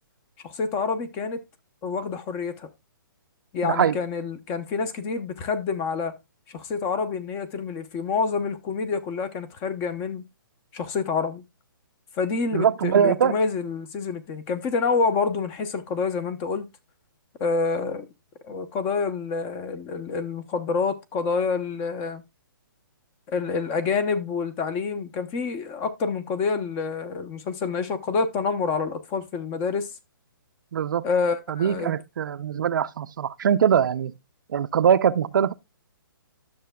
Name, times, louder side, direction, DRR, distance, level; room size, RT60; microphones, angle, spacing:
voice 1, 0.4-1.4 1.8-2.7 3.5-6.1 6.5-10.2 10.7-11.4 12.2-16.7 17.4-18.1 18.5-22.2 23.3-29.9 31.0-31.9, left 4 dB, 20° left, 0.7 m, -27 dB
voice 2, 3.6-4.0 12.5-13.4 30.7-31.0 31.5-34.1 34.5-35.5, right 8 dB, 65° right, 0.5 m, -22 dB
11.5 x 6.7 x 2.2 m
hypercardioid pair, 155°, 12 cm